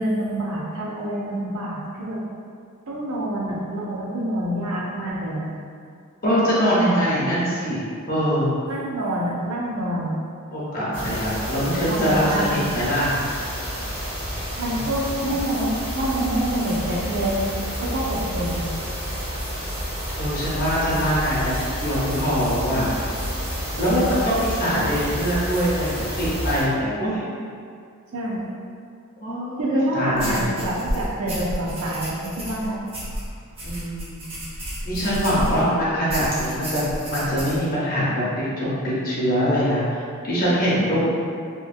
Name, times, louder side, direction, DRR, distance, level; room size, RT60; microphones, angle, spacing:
voice 1, 0.0-2.2 2.9-5.5 6.5-7.3 8.7-10.1 11.9-12.5 14.6-17.4 17.8-18.6 28.1-28.4 29.6-32.8 35.3-35.6, right 1 dB, 90° right, -4 dB, 0.6 m, -27 dB
voice 2, 6.2-7.8 8.1-8.5 10.5-13.1 15.2-15.3 20.1-22.9 23.8-27.3 29.2-30.5 33.6-34.2 34.8-41.0, equal, 45° left, -8 dB, 0.8 m, -23 dB
sound 1, 10.9-26.6, equal, 60° right, 1.0 m, -30 dB
sound 2, 30.1-35.7 36.1-37.6, equal, 25° right, 0.6 m, -31 dB
2.9 x 2.3 x 2.5 m, 2.3 s
head